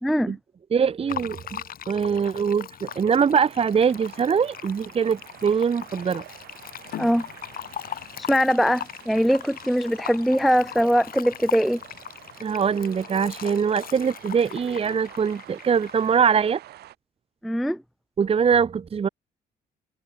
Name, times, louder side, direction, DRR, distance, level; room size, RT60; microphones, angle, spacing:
voice 1, 0.0-0.4 7.0-7.3 8.3-11.8 17.4-17.8, equal, ahead, 0.4 m, -21 dB
voice 2, 0.7-6.2 12.4-16.6 18.2-19.1, right 6 dB, 35° right, 0.8 m, -23 dB
Fill (with liquid), 1.1-16.3, left 9 dB, 60° left, 4.5 m, -40 dB
sound 1, 2.8-17.0, right 14 dB, 80° right, 7.0 m, -48 dB
sound 2, 6.9-10.1, left 13 dB, 80° left, 6.9 m, -42 dB
cardioid pair, 85°, 17 cm